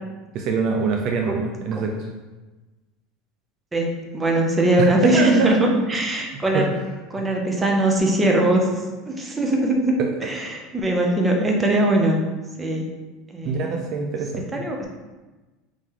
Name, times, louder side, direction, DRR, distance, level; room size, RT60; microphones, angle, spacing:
voice 1, 0.3-2.1 4.8-5.5 6.5-6.6 7.2-7.3 13.4-14.4, right 5 dB, 55° right, 2 dB, 0.4 m, -24 dB
voice 2, 3.7-6.7 7.1-8.7 9.1-12.3 12.6-12.9 13.3-13.8 14.5-14.9, right 1 dB, 20° right, 0 dB, 0.7 m, -21 dB
3.1 x 2.8 x 3.7 m, 1.2 s
hypercardioid pair, 95°, 0 cm